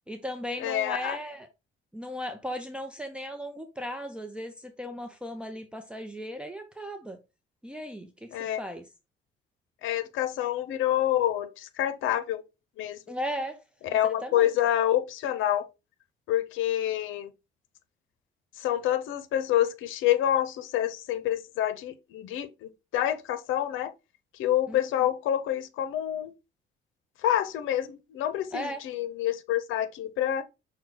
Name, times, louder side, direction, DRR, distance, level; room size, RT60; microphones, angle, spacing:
voice 1, 0.1-1.5 1.9-7.2 7.6-8.9 13.1-13.6 14.2-14.5 24.7-24.9 28.5-28.8, equal, 5° right, 0.6 m, -36 dB
voice 2, 0.6-1.2 8.3-8.6 9.8-12.4 12.8-13.0 13.9-15.6 16.3-17.3 18.6-23.9 24.4-26.3 27.2-30.4, left 12 dB, 90° left, 0.6 m, -27 dB
6.2 x 2.2 x 3.8 m
cardioid pair, 90°, 20 cm